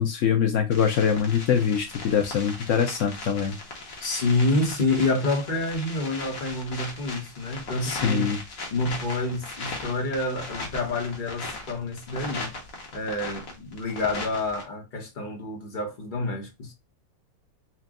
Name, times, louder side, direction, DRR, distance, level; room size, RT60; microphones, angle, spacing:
voice 1, 0.0-3.6 7.8-8.4, left 7 dB, 85° left, 0.6 m, -24 dB
sound 1, 0.7-14.6, left 3 dB, 50° left, 1.3 m, -38 dB
voice 2, 4.0-8.4 8.7-12.5 12.9-16.7, left 2 dB, 35° left, 0.9 m, -28 dB
4.4 x 2.2 x 3.6 m
omnidirectional pair, 2.1 m